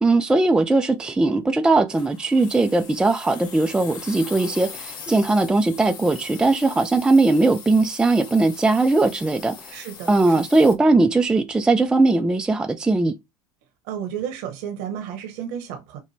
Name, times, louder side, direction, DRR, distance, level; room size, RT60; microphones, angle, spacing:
voice 1, 0.0-9.8 10.1-13.2, right 2 dB, 10° right, 0.4 m, -19 dB
sound 1, 1.9-10.8, left 6 dB, 45° left, 1.2 m, -40 dB
voice 2, 9.7-10.4 13.9-16.0, right 9 dB, 75° right, 1.0 m, -32 dB
5.6 x 2.2 x 3.2 m
supercardioid pair, 110°, 10 cm